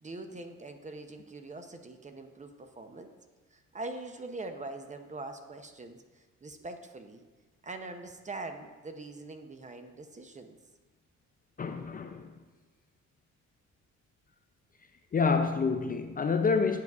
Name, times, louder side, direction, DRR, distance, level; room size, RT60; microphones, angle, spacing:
voice 1, 0.0-3.1 3.5-6.0 6.4-7.2 7.6-10.5, right 2 dB, 25° right, 0.6 m, -43 dB
voice 2, 11.6-12.3 15.1-16.8, left 5 dB, 30° left, 0.4 m, -28 dB
9.3 x 7.0 x 2.4 m
cardioid pair, 90°, 30 cm